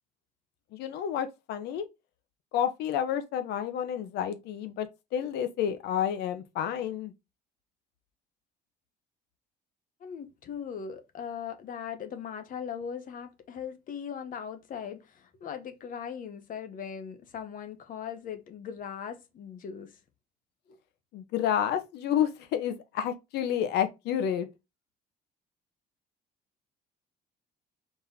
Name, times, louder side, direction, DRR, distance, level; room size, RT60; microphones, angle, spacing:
voice 1, 0.7-1.9 2.5-7.1 21.1-24.5, left 9 dB, 80° left, 0.9 m, -30 dB
voice 2, 10.0-20.0 20.7-20.8, left 7 dB, 55° left, 1.0 m, -39 dB
4.4 x 3.5 x 2.7 m
cardioid pair, 110°, 17 cm